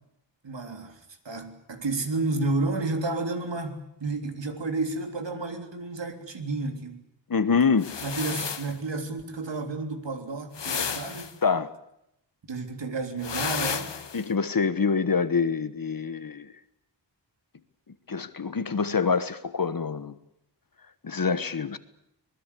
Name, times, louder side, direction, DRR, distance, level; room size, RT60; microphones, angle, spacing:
voice 1, 0.4-7.0 8.0-11.3 12.5-13.9, right 3 dB, 70° right, 3.5 m, -31 dB
voice 2, 7.3-7.9 11.4-11.7 14.1-16.5 18.1-20.1 21.0-21.8, left 5 dB, 50° left, 1.3 m, -25 dB
sound 1, 7.8-8.8 10.5-11.3 13.2-14.3, left 6 dB, 70° left, 1.5 m, -32 dB
25.5 x 20.5 x 8.5 m
wide cardioid pair, 115°, 45 cm